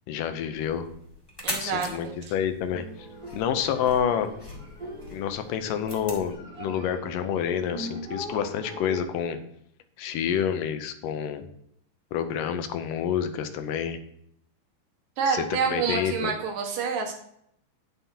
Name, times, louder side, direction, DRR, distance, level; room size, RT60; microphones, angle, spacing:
voice 1, 0.1-0.9 1.6-2.8 3.3-4.3 5.1-9.4 10.0-11.5 12.1-14.0 15.3-16.3, left 8 dB, 80° left, 9 dB, 2.4 m, -28 dB
sound 1, 0.5-6.3, left 1 dB, 10° left, 1.1 m, -41 dB
voice 2, 1.4-2.1 15.2-17.1, right 5 dB, 80° right, 2 dB, 3.3 m, -27 dB
sound 2, 2.6-9.0, equal, 20° right, 1.7 m, -41 dB
9.9 x 9.2 x 2.9 m, 0.70 s
omnidirectional pair, 3.8 m